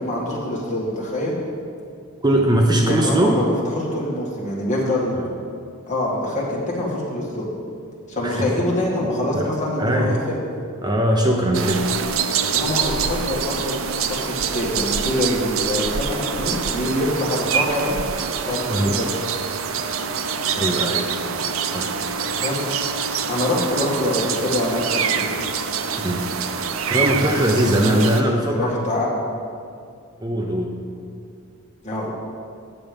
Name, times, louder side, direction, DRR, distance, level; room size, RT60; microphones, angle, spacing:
voice 1, 0.0-1.4 2.8-5.2 5.9-7.5 8.1-10.4 12.4-13.7 14.1-18.0 18.4-19.1 22.4-22.7 23.3-25.3 27.9-28.0 28.5-29.1 31.8-32.1, left 1 dB, 35° left, -4 dB, 1.9 m, -25 dB
voice 2, 2.2-3.4 5.2-5.3 8.2-8.4 9.3-9.5 9.8-10.1 10.8-11.9 18.7-19.0 20.6-21.1 21.7-21.9 22.2-22.3 26.0-26.2 26.9-28.8 30.2-30.7, right 1 dB, 20° right, 1 dB, 0.6 m, -20 dB
sound 1, 11.5-28.2, right 6 dB, 70° right, 0.5 m, -25 dB
9.2 x 6.8 x 5.2 m, 2.4 s
head